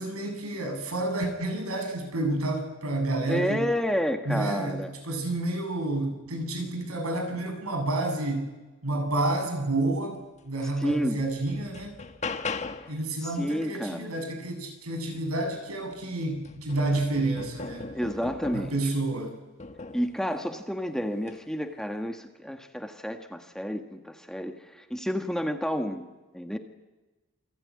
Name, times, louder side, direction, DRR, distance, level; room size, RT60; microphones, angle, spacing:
voice 1, 0.0-3.7 4.2-8.5 8.8-10.2 10.5-11.9 12.9-17.9 18.5-19.3, right 2 dB, 85° right, 5 dB, 7.4 m, -29 dB
voice 2, 3.3-4.9 10.8-11.2 13.2-14.1 17.9-18.8 19.9-26.1 26.3-26.6, equal, ahead, 5 dB, 1.7 m, -30 dB
sound 1, 10.6-10.7 11.2-13.0 15.4-15.5 15.9-18.9 19.6-20.1 21.2-21.4, left 4 dB, 30° left, 1.5 m, -38 dB
28.5 x 21.0 x 9.7 m, 1.2 s
head